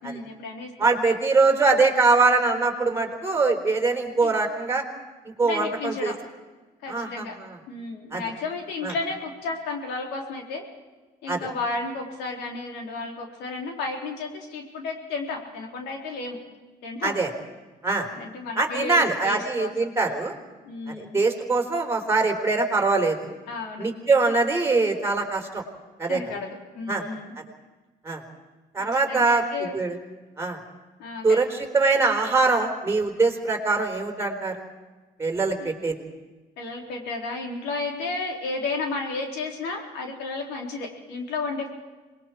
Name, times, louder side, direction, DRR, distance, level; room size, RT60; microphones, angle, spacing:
voice 1, 0.0-1.2 4.2-4.3 5.4-6.2 6.8-7.4 7.7-10.6 11.2-16.4 16.8-17.1 18.1-19.7 20.6-21.2 23.5-23.9 26.1-27.3 28.8-29.8 31.0-31.4 35.6-35.7 36.6-41.7, left 3 dB, 90° left, 2 dB, 4.0 m, -33 dB
voice 2, 0.8-4.8 5.4-6.1 6.9-7.6 8.1-8.2 8.8-8.9 11.3-11.4 17.0-17.3 17.8-18.1 18.6-20.3 21.0-23.3 23.8-25.6 26.0-26.2 26.9-27.0 28.0-28.2 28.7-29.4 29.7-29.9 30.4-30.6 31.2-31.5 31.7-34.6 35.2-35.9, right 3 dB, 15° right, 3 dB, 4.1 m, -23 dB
26.5 x 21.0 x 4.7 m, 1.2 s
cardioid pair, 110°, 17 cm